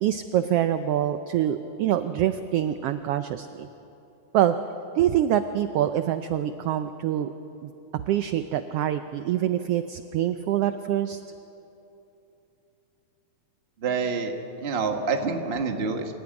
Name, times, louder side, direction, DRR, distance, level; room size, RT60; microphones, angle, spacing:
voice 1, 0.0-3.7 4.3-4.5 5.0-7.3 7.6-11.2, right 11 dB, 85° right, 10 dB, 1.3 m, -25 dB
voice 2, 13.8-14.3 14.6-16.1, right 5 dB, 35° right, 4 dB, 0.9 m, -27 dB
26.0 x 14.5 x 9.7 m, 2.9 s
omnidirectional pair, 3.4 m